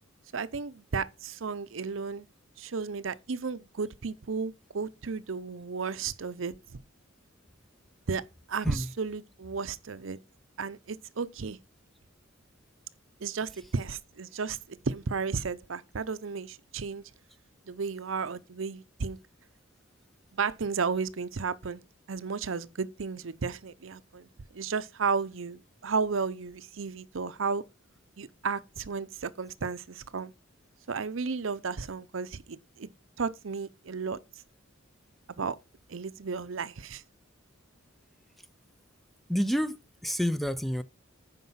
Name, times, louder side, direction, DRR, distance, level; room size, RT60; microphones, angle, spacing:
voice 1, 0.3-2.3 2.6-6.5 8.1-8.2 8.5-10.2 10.6-11.6 13.2-17.0 17.7-19.2 20.3-21.8 22.1-27.6 28.2-30.3 30.9-32.9 33.2-34.2 35.3-35.6 35.9-37.0, right 5 dB, 70° right, 0.6 m, -33 dB
voice 2, 39.3-40.8, equal, ahead, 0.4 m, -29 dB
9.4 x 5.4 x 5.6 m
head